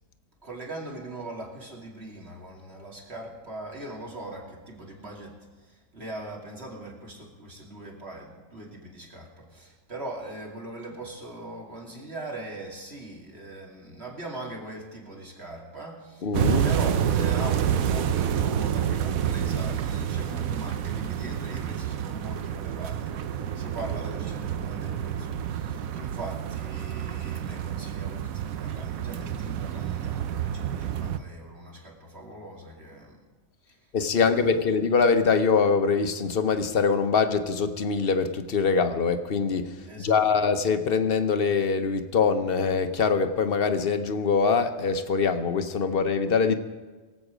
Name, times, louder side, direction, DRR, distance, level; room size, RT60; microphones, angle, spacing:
voice 1, 0.4-16.4 16.6-33.2 34.2-34.6 39.9-40.1, right 2 dB, 50° right, -2 dB, 2.8 m, -40 dB
voice 2, 16.2-16.7 33.9-39.7 40.0-46.5, left 5 dB, 50° left, 9 dB, 0.9 m, -23 dB
sound 1, 16.3-31.2, right 9 dB, 85° right, 1.1 m, -28 dB
23.0 x 8.2 x 5.0 m, 1.3 s
omnidirectional pair, 1.4 m